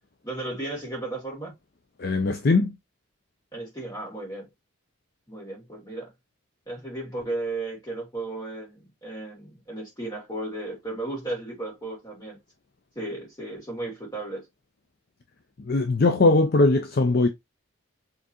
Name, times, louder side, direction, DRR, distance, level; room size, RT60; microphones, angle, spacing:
voice 1, 0.2-1.5 3.5-4.5 5.3-6.1 6.7-12.4 12.9-14.4, right 2 dB, 20° left, 2.8 m, -34 dB
voice 2, 2.0-2.8 15.7-17.3, left 3 dB, 50° left, 0.5 m, -20 dB
4.4 x 3.8 x 2.9 m
head